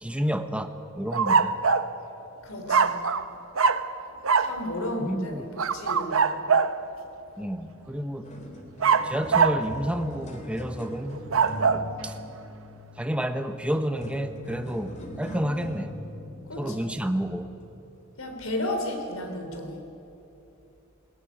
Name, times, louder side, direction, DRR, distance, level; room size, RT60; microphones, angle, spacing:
voice 1, 0.0-1.6 5.0-5.5 7.4-8.4 9.0-11.3 12.0-12.2 13.0-16.0 16.6-17.5, equal, 5° right, 7 dB, 1.0 m, -30 dB
sound 1, 1.1-1.9 2.7-3.3 3.6-3.9 4.2-4.6 5.6-6.8 8.8-9.6 11.1-11.8, right 5 dB, 80° right, 0.9 m, -22 dB
voice 2, 2.4-3.0 4.4-5.4 5.7-6.3 11.6-11.8 16.5-16.7 18.2-19.8, left 1 dB, 85° left, 4 dB, 3.6 m, -33 dB
sound 2, 7.7-7.8 8.1-17.8 18.4-18.6 19.4-19.5, equal, 35° left, 2.9 m, -42 dB
21.0 x 19.0 x 9.6 m, 2.8 s
head